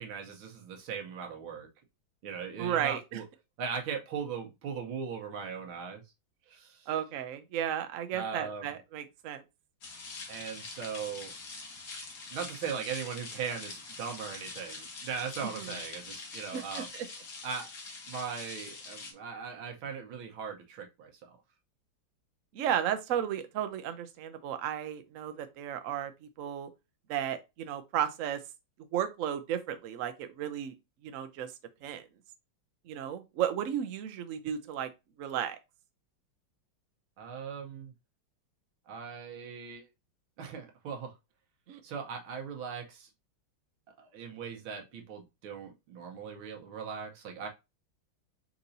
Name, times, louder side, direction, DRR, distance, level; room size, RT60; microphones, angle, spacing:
voice 1, 0.0-1.7 2.2-3.3 3.6-6.0 6.5-6.9 8.1-8.8 10.3-11.3 12.3-16.9 17.4-17.7 18.1-21.4 37.2-37.9 38.9-39.9 40.4-41.1 41.8-43.1 44.0-47.5, right 6 dB, 85° right, 1.8 m, -39 dB
voice 2, 2.6-3.2 6.9-9.4 15.6-15.7 16.5-17.1 22.5-26.1 26.4-26.7 27.1-28.4 28.9-30.7 31.0-31.5 31.8-32.0 32.9-34.9 35.2-35.6 41.7-41.8, right 10 dB, 65° right, 0.8 m, -34 dB
sound 1, 9.8-19.1, left 3 dB, 50° left, 1.5 m, -44 dB
4.6 x 3.9 x 2.6 m
omnidirectional pair, 2.1 m